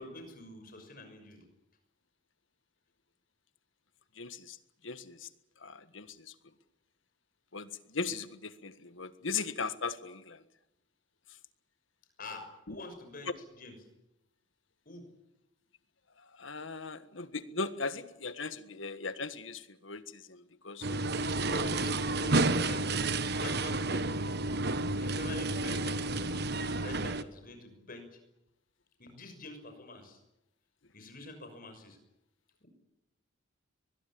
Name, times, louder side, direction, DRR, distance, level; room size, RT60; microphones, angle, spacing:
voice 1, 0.0-1.4 12.2-13.7 14.8-15.0 21.4-22.8 23.4-24.1 25.0-28.1 29.0-30.2 30.9-32.0 32.6-32.7, left 2 dB, 45° left, 6 dB, 6.3 m, -46 dB
voice 2, 4.1-4.6 4.8-5.3 5.6-6.3 7.5-10.4 12.7-12.8 16.2-21.3, left 4 dB, 80° left, 12 dB, 1.6 m, -39 dB
sound 1, 20.8-27.2, right 2 dB, 55° right, 1.2 m, -31 dB
23.5 x 21.0 x 8.7 m, 0.88 s
head